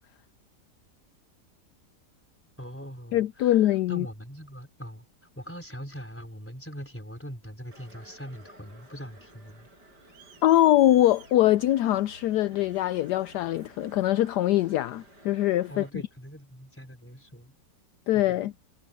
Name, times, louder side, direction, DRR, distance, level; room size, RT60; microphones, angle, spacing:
voice 1, 2.6-5.0 5.3-9.7 15.7-17.5 18.2-18.5, equal, 5° left, 4.7 m, -42 dB
voice 2, 3.1-4.1 10.4-15.8 18.1-18.5, left 14 dB, 75° left, 1.1 m, -23 dB
Crowd, 7.7-15.9, right 2 dB, 65° right, 8.2 m, -52 dB
omnidirectional pair, 1.9 m